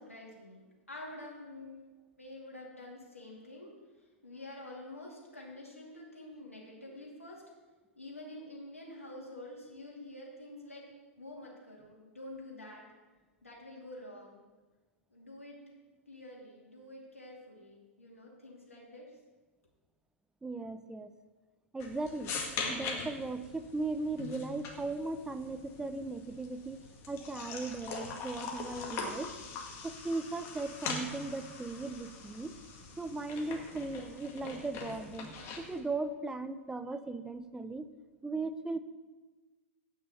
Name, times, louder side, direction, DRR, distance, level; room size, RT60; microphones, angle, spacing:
voice 1, 0.0-1.9 2.2-7.4 7.9-10.9 11.2-12.9 13.4-14.5 15.1-15.7 16.1-19.2, left 1 dB, 90° left, -3 dB, 2.5 m, -48 dB
voice 2, 20.4-21.1 21.7-22.3 22.7-29.3 29.8-32.5 33.0-37.9 38.2-38.8, right 3 dB, 10° right, 11 dB, 0.6 m, -37 dB
sound 1, 21.8-35.8, left 4 dB, 35° left, 1.9 m, -42 dB
8.9 x 6.3 x 6.9 m, 1.3 s
figure-of-eight pair, 100°, 7 cm